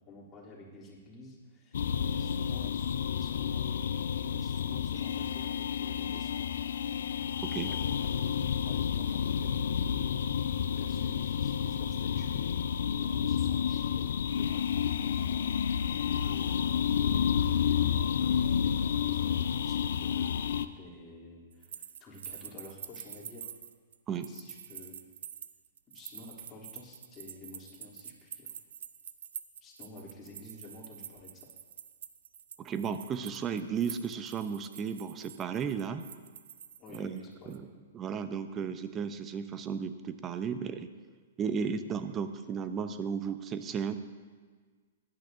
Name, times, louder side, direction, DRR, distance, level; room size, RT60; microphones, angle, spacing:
voice 1, 0.0-3.7 4.3-6.5 7.5-8.1 8.6-10.1 10.6-12.5 13.0-15.7 16.1-16.5 17.0-19.4 19.6-23.5 24.3-25.0 25.9-28.5 29.6-31.5 36.8-37.6, left 2 dB, 25° left, -5 dB, 3.2 m, -51 dB
sound 1, 1.7-20.6, left 8 dB, 70° left, 0.5 m, -30 dB
voice 2, 7.4-7.7 24.1-24.3 32.6-36.0 36.9-37.2 37.5-37.7 37.9-40.9 41.4-43.9, right 6 dB, 25° right, 10 dB, 0.7 m, -34 dB
sound 2, 21.5-37.2 37.5-37.6, right 9 dB, 65° right, 0.6 m, -47 dB
16.5 x 11.0 x 2.7 m, 1.5 s
hypercardioid pair, 115°, 0 cm